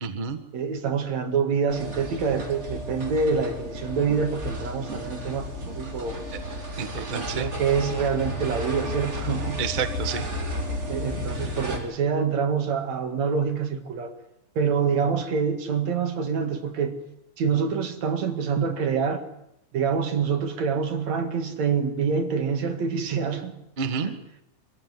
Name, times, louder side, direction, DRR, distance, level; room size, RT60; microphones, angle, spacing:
voice 1, 0.0-0.4 6.8-7.5 9.6-10.3 23.8-24.1, right 6 dB, 80° right, 0.4 m, -29 dB
voice 2, 0.5-6.2 7.0-9.6 10.9-14.1 14.6-17.0 17.4-19.2 19.7-23.6 24.0-24.2, right 6 dB, 60° right, 3.1 m, -26 dB
sound 1, 1.7-11.8, equal, 20° right, 2.9 m, -33 dB
24.0 x 15.0 x 9.5 m
omnidirectional pair, 3.7 m